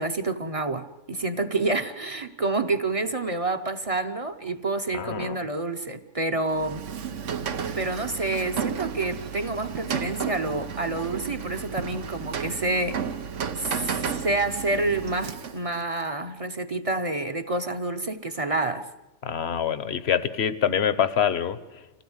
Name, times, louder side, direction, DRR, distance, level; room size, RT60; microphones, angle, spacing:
voice 1, 0.0-6.8 7.7-13.0 13.5-18.9, right 2 dB, 35° right, 7 dB, 0.8 m, -28 dB
voice 2, 4.9-5.4 19.2-21.6, left 8 dB, 65° left, 14 dB, 1.2 m, -25 dB
Rain, 6.5-15.8, right 7 dB, 85° right, 1.3 m, -33 dB
26.0 x 16.5 x 8.0 m, 1.0 s
omnidirectional pair, 1.2 m